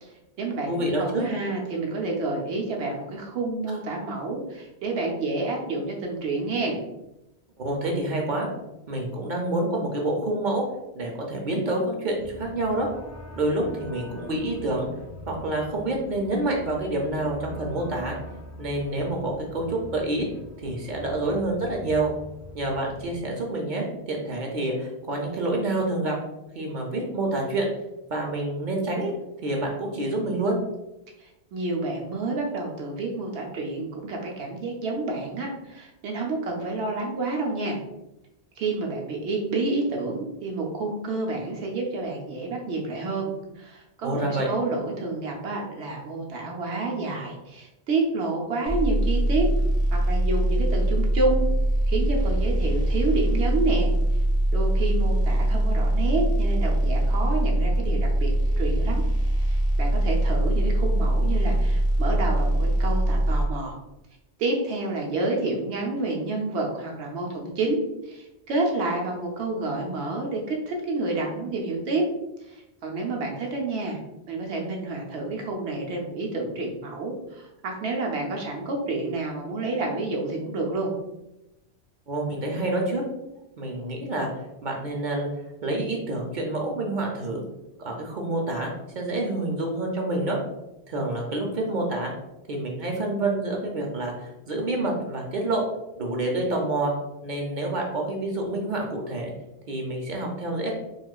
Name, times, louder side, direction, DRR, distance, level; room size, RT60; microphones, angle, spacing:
voice 1, 0.0-0.7 1.0-6.8 31.2-37.8 38.6-49.5 49.9-51.5 51.9-53.9 54.5-58.3 58.6-59.0 59.4-63.8 64.4-72.0 72.5-74.0 74.3-80.9, right 3 dB, 90° right, 0 dB, 0.9 m, -29 dB
voice 2, 0.7-1.2 7.6-8.5 8.9-10.6 11.0-12.9 13.3-14.9 15.3-18.2 18.6-20.3 20.6-22.1 22.5-26.2 26.5-27.7 28.1-29.1 29.4-30.6 44.0-44.5 82.1-83.0 83.6-84.3 84.6-85.3 85.6-87.4 87.8-90.4 90.9-92.1 92.5-95.7 96.0-96.9 97.2-99.3 99.7-100.7, right 2 dB, 55° right, 0 dB, 0.7 m, -27 dB
sound 1, 12.2-23.2, left 1 dB, 30° left, 0.3 m, -43 dB
sound 2, 48.7-63.4, right 1 dB, 10° right, 0.8 m, -22 dB
4.6 x 2.4 x 2.2 m, 0.94 s
omnidirectional pair, 1.1 m